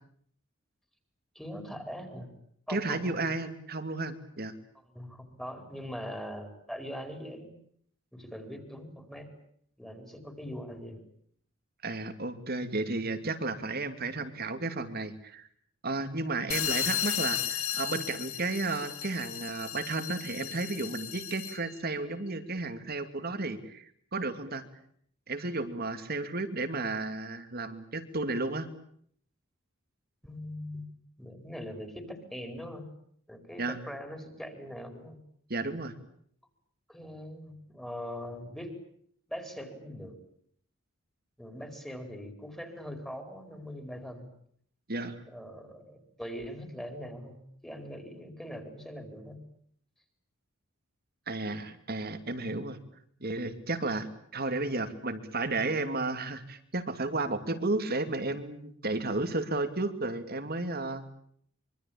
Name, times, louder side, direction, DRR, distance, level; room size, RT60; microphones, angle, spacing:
voice 1, 1.3-2.3 2.7-3.2 4.9-7.5 8.1-9.3 9.8-11.0 30.2-32.9 33.3-35.2 36.9-38.7 39.3-40.2 41.4-44.3 45.3-49.4, equal, 5° left, 7 dB, 4.4 m, -41 dB
voice 2, 2.7-4.5 11.8-15.5 15.8-24.6 25.3-28.7 33.6-33.8 35.5-36.0 44.9-45.2 51.3-52.8 53.2-61.1, right 2 dB, 50° right, 9 dB, 2.7 m, -33 dB
sound 1, 16.5-21.7, left 10 dB, 90° left, 2.6 m, -34 dB
25.0 x 24.5 x 8.8 m, 0.65 s
head